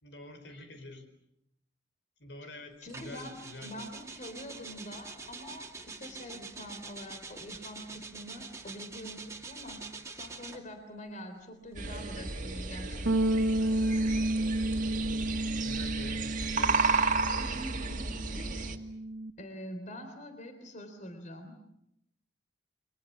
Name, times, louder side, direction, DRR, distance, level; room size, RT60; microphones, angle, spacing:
voice 1, 0.0-1.1 2.2-3.7 15.6-17.2, left 2 dB, 70° left, 8 dB, 4.8 m, -47 dB
voice 2, 2.8-13.4 17.4-18.7 19.4-21.6, equal, 45° left, 7 dB, 3.6 m, -45 dB
sound 1, 2.9-10.8 11.6-14.1, right 4 dB, 15° right, 2.4 m, -46 dB
sound 2, 11.7-18.8, right 4 dB, 45° right, 2.0 m, -32 dB
Bass guitar, 13.1-19.3, right 1 dB, 80° right, 1.1 m, -31 dB
29.5 x 24.5 x 7.3 m, 0.79 s
head